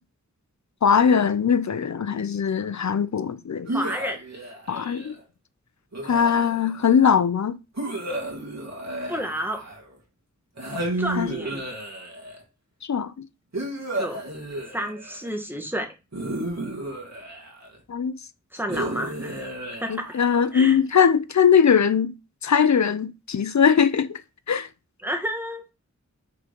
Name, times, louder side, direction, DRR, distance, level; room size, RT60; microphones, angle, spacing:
voice 1, 0.8-3.7 4.7-5.1 6.0-7.6 11.2-11.3 12.8-13.3 17.9-18.1 19.9-22.1 22.4-24.2 24.5-24.7, left 7 dB, 65° left, 0.5 m, -20 dB
voice 2, 3.7-4.2 9.1-9.6 11.0-11.7 13.9-14.2 14.7-15.9 18.5-20.1 20.5-20.8 25.0-25.7, equal, 5° right, 1.5 m, -31 dB
sound 1, 3.7-5.2 5.9-6.9 7.8-10.0 10.6-12.4 13.5-15.3 16.1-17.8 18.7-20.6, right 1 dB, 60° right, 2.0 m, -32 dB
5.7 x 3.8 x 5.1 m
wide cardioid pair, 50°, 30 cm